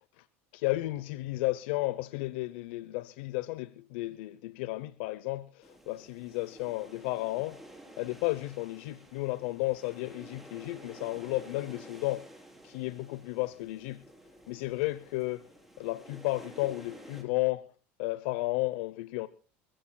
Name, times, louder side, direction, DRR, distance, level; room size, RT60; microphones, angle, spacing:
voice 1, 0.5-7.6 8.0-12.3 12.6-14.0 14.5-15.4 15.8-17.7 18.0-19.3, left 19 dB, 80° left, 0.8 m, -33 dB
sound 1, 5.6-17.2, right 1 dB, 5° right, 4.3 m, -52 dB
29.0 x 16.0 x 2.3 m
supercardioid pair, 130°, 6 cm